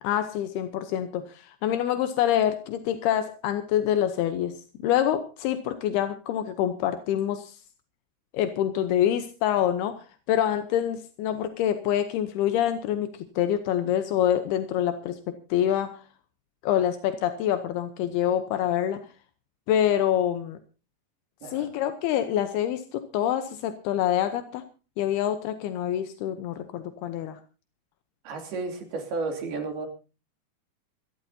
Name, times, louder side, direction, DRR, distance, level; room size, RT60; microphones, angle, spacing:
voice 1, 0.0-4.5 4.8-7.6 8.3-15.2 15.5-15.9 16.6-19.0 19.7-20.6 21.4-24.6 25.0-27.4, left 10 dB, 80° left, 9 dB, 2.9 m, -26 dB
voice 2, 21.4-21.7 28.2-29.9, right 3 dB, 75° right, 3 dB, 4.9 m, -32 dB
25.5 x 12.5 x 2.8 m, 0.33 s
omnidirectional pair, 4.5 m